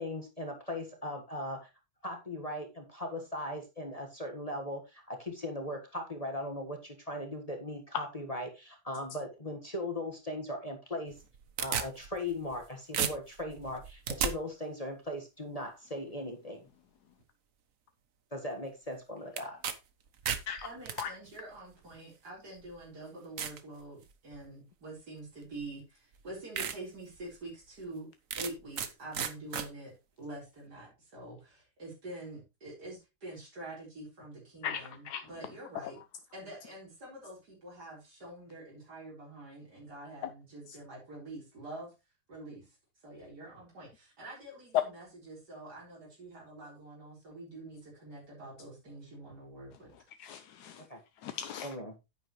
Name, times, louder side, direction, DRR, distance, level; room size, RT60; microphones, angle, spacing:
voice 1, 0.0-1.7 2.0-11.2 11.6-16.7 18.3-19.6 50.9-51.0 51.6-51.9, left 1 dB, 25° left, 1.6 m, -38 dB
sound 1, 11.1-12.6 12.9-14.3 19.4-19.8 20.1-21.0 21.9-22.0 22.6-22.7 23.4-23.6 24.1-24.5 25.6-25.7 26.1-26.2 26.6-26.8 27.2-27.3 28.3-28.9 29.1-29.7, right 7 dB, 60° right, 1.3 m, -34 dB
voice 2, 20.6-28.1 28.4-36.0 36.3-41.9 42.3-42.8 43.0-49.9, right 2 dB, 85° right, 4.7 m, -46 dB
voice 3, 34.6-35.2 35.8-35.9 40.2-40.3 50.2-50.8 51.2-51.7, left 8 dB, 80° left, 1.3 m, -39 dB
10.0 x 9.0 x 3.1 m
omnidirectional pair, 1.7 m